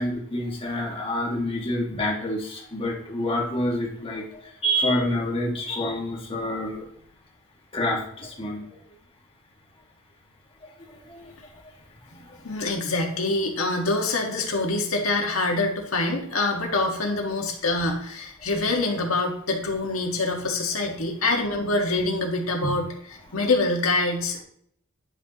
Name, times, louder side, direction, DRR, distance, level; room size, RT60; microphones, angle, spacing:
voice 1, 0.0-4.2 4.6-6.8 7.7-8.6 11.1-11.3 20.9-21.0 22.6-22.7 23.3-23.4, equal, 25° left, -2 dB, 1.8 m, -27 dB
voice 2, 12.4-22.9 23.3-24.4, left 2 dB, 85° left, 1 dB, 1.7 m, -25 dB
10.0 x 6.1 x 3.0 m, 0.67 s
head